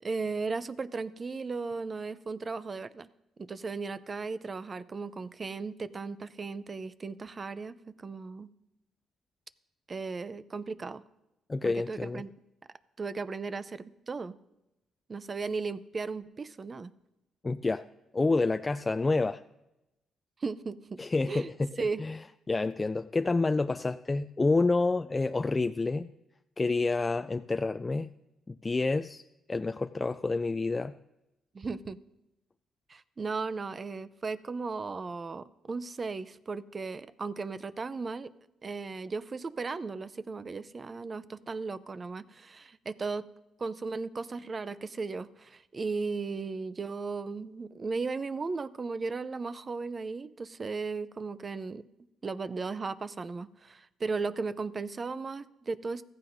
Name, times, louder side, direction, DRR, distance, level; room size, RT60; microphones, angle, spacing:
voice 1, 0.0-3.1 3.4-8.5 9.9-11.0 11.6-12.3 13.0-14.3 15.1-16.9 20.4-21.0 21.3-21.5 21.8-22.0 31.5-32.0 32.9-38.3 38.6-43.3 43.6-51.8 52.2-56.0, right 4 dB, 35° right, 15 dB, 0.5 m, -36 dB
voice 2, 11.5-12.2 17.4-17.8 18.1-19.4 21.0-22.2 22.5-26.1 26.6-28.1 28.5-29.2 29.5-30.9, left 3 dB, 25° left, 10 dB, 0.3 m, -28 dB
15.0 x 15.0 x 2.7 m, 0.94 s
cardioid pair, 90°, 0 cm